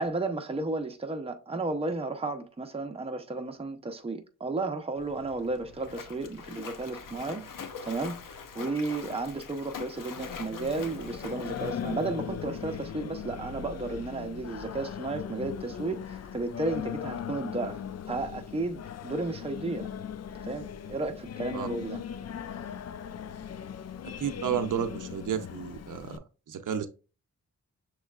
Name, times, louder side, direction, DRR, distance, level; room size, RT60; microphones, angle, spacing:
voice 1, 0.0-7.5 7.8-8.2 8.5-17.8 18.1-19.9 20.4-22.0, right 3 dB, 20° right, 0.6 m, -33 dB
Splash splatter, 5.0-12.9, left 6 dB, 80° left, 0.8 m, -44 dB
Singing, 10.2-26.2, left 8 dB, 55° left, 0.4 m, -39 dB
voice 2, 24.2-26.9, right 9 dB, 70° right, 0.6 m, -32 dB
6.4 x 3.1 x 2.4 m
cardioid pair, 80°, 32 cm